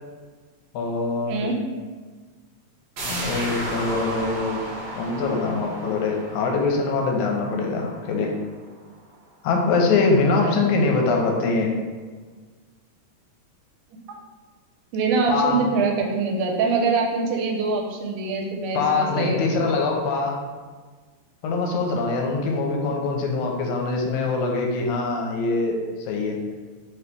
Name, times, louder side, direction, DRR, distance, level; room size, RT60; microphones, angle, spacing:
voice 1, 0.7-1.5 3.0-4.6 4.9-8.3 9.4-11.7 15.3-15.6 18.7-20.4 21.4-26.4, left 3 dB, 80° left, 1 dB, 2.0 m, -23 dB
voice 2, 1.3-1.6 10.4-10.6 13.9-14.0 14.9-19.4, right 4 dB, 85° right, 1 dB, 2.0 m, -24 dB
sound 1, 3.0-8.4 8.8-8.9, right 1 dB, 60° right, 2.1 m, -33 dB
4.6 x 2.9 x 3.4 m, 1.4 s
omnidirectional pair, 3.5 m